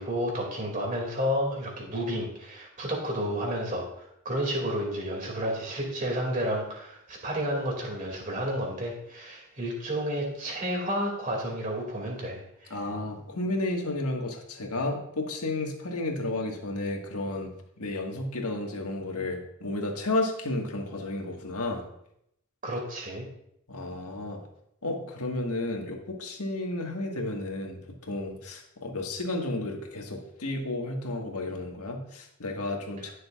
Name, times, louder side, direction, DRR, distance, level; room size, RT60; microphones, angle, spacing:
voice 1, 0.0-3.9 4.2-12.8 22.6-23.3, equal, 35° right, -1 dB, 2.5 m, -31 dB
voice 2, 12.7-17.5 17.8-21.8 23.7-24.4 24.8-27.8 28.1-33.1, left 2 dB, 85° left, 1 dB, 1.7 m, -32 dB
18.5 x 6.5 x 2.5 m, 0.75 s
head